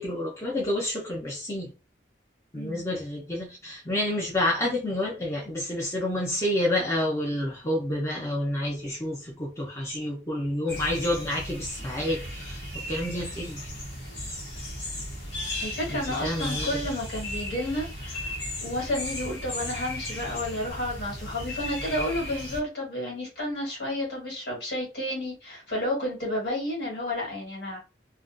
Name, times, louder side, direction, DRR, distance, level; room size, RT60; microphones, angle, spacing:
voice 1, 0.0-1.7 2.5-13.7 15.9-16.8, left 1 dB, 15° left, 0.6 m, -29 dB
voice 2, 2.5-2.9 15.6-27.8, left 1 dB, 65° left, 1.4 m, -31 dB
sound 1, 10.7-22.6, left 1 dB, 85° left, 1.0 m, -36 dB
2.4 x 2.2 x 2.5 m
head